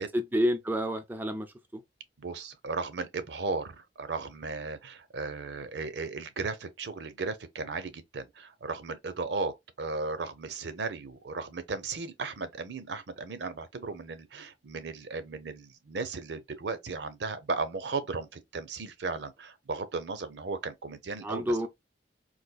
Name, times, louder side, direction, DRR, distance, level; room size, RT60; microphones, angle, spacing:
voice 1, 0.1-1.8 21.2-21.7, equal, 10° right, 0.3 m, -29 dB
voice 2, 2.2-21.7, right 4 dB, 70° right, 0.6 m, -36 dB
4.0 x 2.6 x 2.2 m
head